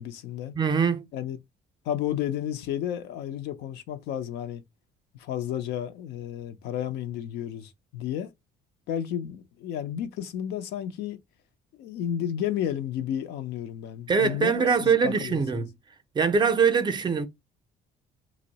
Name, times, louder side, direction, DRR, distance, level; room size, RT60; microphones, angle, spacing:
voice 1, 0.0-0.6 1.1-1.4 1.9-4.6 5.1-8.3 8.9-11.2 11.7-15.6, left 10 dB, 85° left, 0.5 m, -32 dB
voice 2, 0.5-1.1 14.1-15.7 16.1-17.3, right 5 dB, 25° right, 0.5 m, -23 dB
2.6 x 2.0 x 3.8 m
cardioid pair, 110°, 17 cm